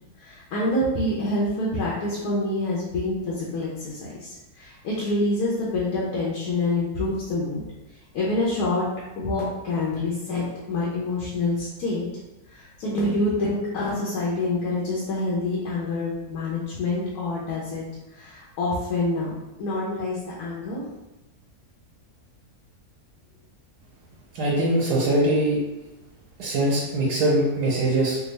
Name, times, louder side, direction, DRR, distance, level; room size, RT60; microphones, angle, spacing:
voice 1, 0.2-7.6 8.1-8.9 9.1-12.1 12.5-17.8 18.1-19.3 19.6-20.8, left 2 dB, 75° left, -6 dB, 1.2 m, -26 dB
voice 2, 24.3-25.6 26.4-28.2, right 1 dB, 90° right, -5 dB, 1.4 m, -22 dB
3.4 x 2.3 x 3.1 m, 1.0 s
omnidirectional pair, 1.7 m